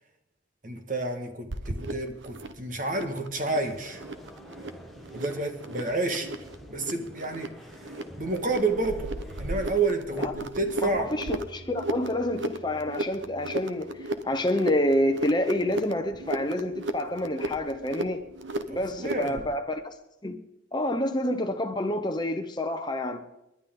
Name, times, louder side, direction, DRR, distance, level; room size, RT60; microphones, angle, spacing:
voice 1, 0.6-4.0 5.1-6.3 6.7-11.1 18.7-19.4, right 3 dB, 45° right, 1.8 m, -30 dB
sound 1, 1.5-19.5, right 2 dB, 75° right, 1.2 m, -36 dB
sound 2, 3.3-9.8, left 1 dB, ahead, 1.5 m, -48 dB
voice 2, 10.8-18.2 18.7-19.8 20.2-20.4 20.7-23.2, left 1 dB, 20° left, 0.9 m, -28 dB
29.5 x 11.5 x 3.9 m
head